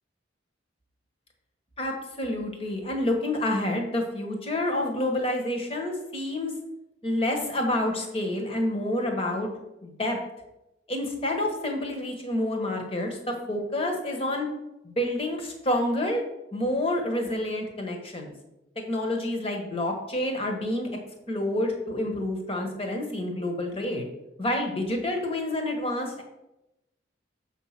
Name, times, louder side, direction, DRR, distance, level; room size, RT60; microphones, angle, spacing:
voice 1, 1.8-6.5 7.0-9.5 9.8-10.2 10.9-14.5 14.8-16.2 16.5-18.3 18.7-20.9 21.3-24.1 24.4-26.2, left 1 dB, 30° left, 2 dB, 1.2 m, -28 dB
6.8 x 4.6 x 5.8 m, 0.92 s
head